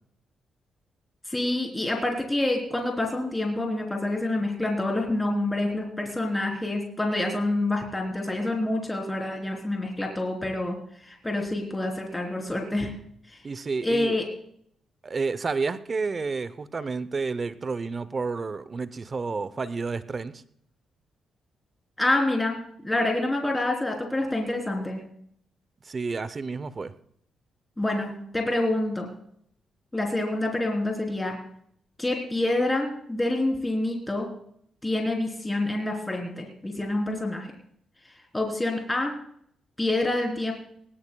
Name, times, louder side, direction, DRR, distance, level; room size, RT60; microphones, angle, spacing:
voice 1, 1.3-10.8 11.0-12.9 13.3-13.4 13.8-14.2 22.0-22.6 22.8-25.0 27.8-29.1 29.9-31.3 32.0-34.3 34.8-37.5 38.3-39.1 39.8-40.5, left 2 dB, 15° left, 1 dB, 3.6 m, -27 dB
voice 2, 13.4-14.2 15.0-20.4 25.8-26.9, right 4 dB, 40° right, 15 dB, 0.7 m, -30 dB
19.0 x 18.0 x 2.3 m, 0.67 s
cardioid pair, 70°, 0 cm